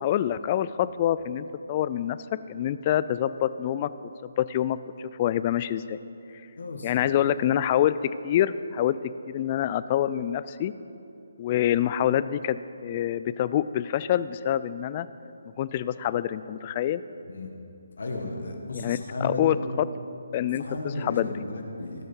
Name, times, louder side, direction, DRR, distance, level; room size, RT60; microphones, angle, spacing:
voice 1, 0.0-2.2 2.5-3.9 4.4-6.0 6.8-8.0 8.2-9.0 9.3-10.7 11.4-15.1 15.6-17.0 18.7-19.9 20.3-20.6 21.0-21.3, left 11 dB, 30° left, 15 dB, 0.3 m, -26 dB
voice 2, 6.6-7.1 17.3-17.5 18.0-19.6 20.6-22.1, left 2 dB, 70° left, 2 dB, 1.7 m, -34 dB
18.0 x 6.4 x 4.5 m, 2.8 s
figure-of-eight pair, 150°, 0 cm